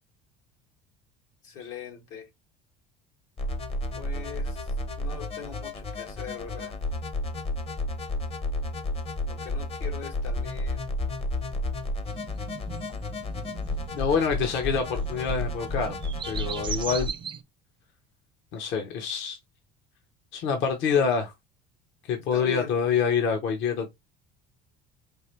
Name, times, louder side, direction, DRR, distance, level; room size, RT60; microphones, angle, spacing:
voice 1, 1.4-2.3 3.9-4.7 5.0-6.8 9.3-10.9 20.9-21.1 22.3-22.7, left 7 dB, 80° left, 1.8 m, -40 dB
sound 1, 3.4-17.1, left 1 dB, 25° left, 0.6 m, -32 dB
sound 2, 12.1-17.4, right 7 dB, 25° right, 0.4 m, -39 dB
voice 2, 13.9-15.9 16.3-17.1 18.5-19.4 20.3-21.3 22.1-23.9, left 6 dB, 60° left, 0.9 m, -26 dB
4.6 x 2.5 x 3.1 m
cardioid pair, 125°, 21 cm